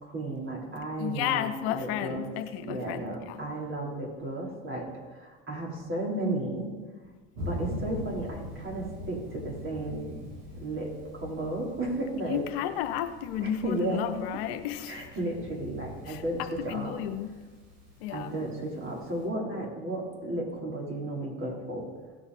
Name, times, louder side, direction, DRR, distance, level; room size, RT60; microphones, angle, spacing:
voice 1, 0.0-2.3 2.6-6.7 7.5-10.2 10.5-12.4 13.4-14.0 14.9-17.0 18.1-21.9, right 1 dB, 40° right, 3.8 m, -34 dB
voice 2, 1.0-3.4 12.2-15.1 16.1-17.4 18.0-18.3, left 11 dB, 85° left, 0.8 m, -33 dB
Thunder, 7.4-19.3, left 1 dB, 75° right, 2.2 m, -42 dB
16.5 x 5.9 x 4.1 m
hypercardioid pair, 75°, 31 cm